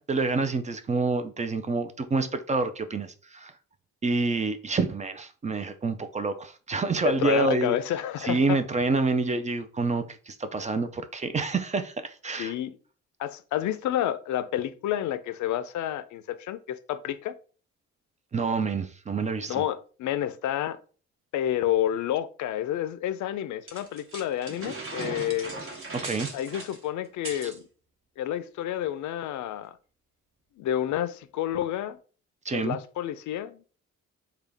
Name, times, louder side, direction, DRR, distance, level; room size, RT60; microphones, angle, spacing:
voice 1, 0.0-3.5 4.0-7.7 8.2-12.5 18.3-19.6 25.9-26.3 27.4-27.5 32.5-32.8, right 3 dB, 25° right, 0.4 m, -27 dB
voice 2, 7.0-8.6 12.4-12.8 13.2-17.3 19.5-20.8 21.3-25.5 26.3-27.7 28.2-29.8 30.6-32.0 32.5-33.6, left 11 dB, 70° left, 0.5 m, -29 dB
sound 1, 23.7-27.6, right 2 dB, 45° right, 1.1 m, -38 dB
3.6 x 2.3 x 3.4 m
cardioid pair, 90°, 30 cm